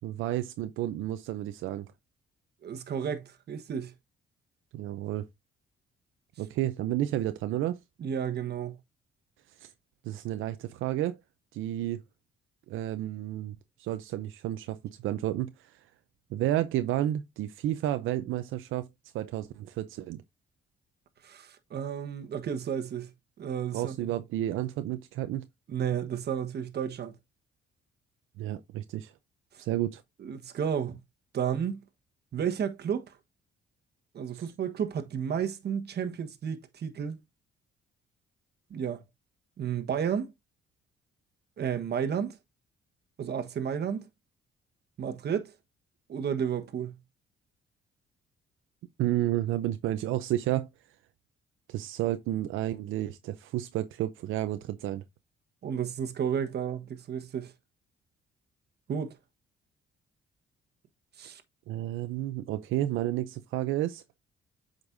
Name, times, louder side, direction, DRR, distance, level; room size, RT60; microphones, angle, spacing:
voice 1, 0.0-1.9 4.7-5.3 6.4-7.8 9.6-9.7 10.0-11.2 11.5-12.0 12.7-14.8 15.0-15.8 16.3-18.9 19.1-20.2 23.7-25.5 28.4-29.1 29.6-30.0 34.3-34.4 49.0-50.7 51.7-55.0 61.2-61.3 61.7-64.0, right 13 dB, 85° right, 0.6 m, -31 dB
voice 2, 2.6-3.9 8.0-8.8 21.2-23.1 23.4-24.0 25.7-27.1 30.2-31.0 31.3-31.8 32.3-33.1 34.1-37.2 38.7-39.0 39.6-40.3 41.6-42.4 43.2-44.1 45.0-45.5 46.1-46.9 55.6-57.5 58.9-59.2 61.2-61.4, right 8 dB, 55° right, 1.3 m, -32 dB
8.0 x 5.3 x 2.6 m
cardioid pair, 90°, 20 cm